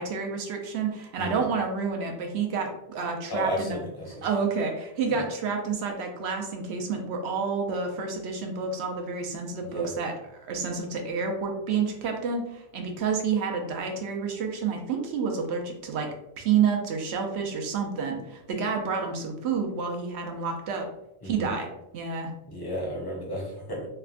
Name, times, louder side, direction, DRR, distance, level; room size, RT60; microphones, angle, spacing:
voice 1, 0.0-3.8 4.2-10.1 10.4-16.1 16.4-20.9 21.2-22.3, right 5 dB, 75° right, 3 dB, 0.9 m, -29 dB
voice 2, 3.3-4.3 5.1-5.2 9.6-9.9 21.2-21.6 22.5-23.9, equal, 25° left, -3 dB, 0.6 m, -33 dB
3.4 x 2.1 x 2.4 m, 0.86 s
omnidirectional pair, 1.1 m